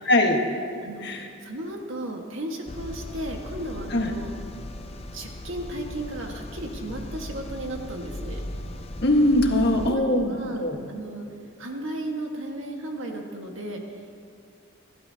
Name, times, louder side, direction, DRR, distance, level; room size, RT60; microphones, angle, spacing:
voice 1, 0.0-0.4 1.0-1.3 3.9-4.1 9.0-10.8, left 1 dB, 50° left, 2 dB, 1.5 m, -21 dB
voice 2, 1.4-4.3 5.1-8.4 9.7-10.6 10.9-11.3 11.6-14.0, right 1 dB, 70° right, 1 dB, 1.7 m, -34 dB
sound 1, 2.7-9.9, left 1 dB, 30° left, 0.5 m, -37 dB
29.0 x 11.5 x 2.9 m, 2.2 s
head